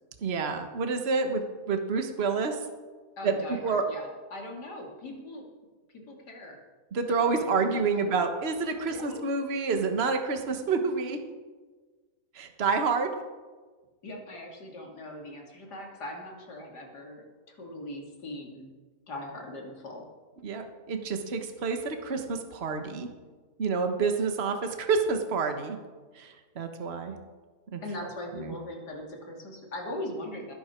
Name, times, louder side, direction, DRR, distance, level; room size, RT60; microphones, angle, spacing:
voice 1, 0.2-1.4 1.7-2.6 3.2-3.8 6.9-11.2 12.3-13.1 20.4-23.1 23.6-25.8 26.2-27.1 27.7-27.8 28.3-28.5, right 4 dB, 40° right, 6 dB, 1.5 m, -28 dB
voice 2, 3.2-5.5 5.9-6.6 7.1-8.2 8.9-9.2 14.0-18.7 19.1-20.0 27.8-30.5, left 1 dB, 80° left, 0 dB, 3.2 m, -40 dB
20.0 x 11.0 x 4.5 m, 1.4 s
omnidirectional pair, 1.7 m